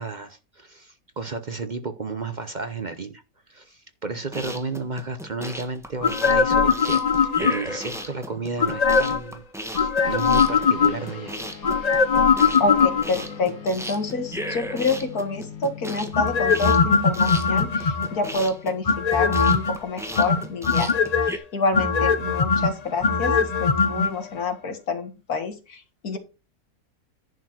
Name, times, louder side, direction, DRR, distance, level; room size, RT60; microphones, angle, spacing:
voice 1, 0.0-3.2 3.5-11.3, right 3 dB, 40° right, 10 dB, 0.8 m, -33 dB
sound 1, 4.2-21.4, equal, ahead, 1.2 m, -36 dB
sound 2, 6.0-7.8 8.6-9.3 9.7-11.2 11.6-13.3 16.1-18.3 18.9-19.8 20.2-21.3 21.7-24.1 24.4-24.5, left 5 dB, 35° left, 0.7 m, -20 dB
sound 3, 10.0-19.8, left 7 dB, 75° left, 2.3 m, -42 dB
voice 2, 12.6-26.2, left 3 dB, 90° left, 7 dB, 2.2 m, -28 dB
11.0 x 4.5 x 6.1 m, 0.30 s
omnidirectional pair, 1.5 m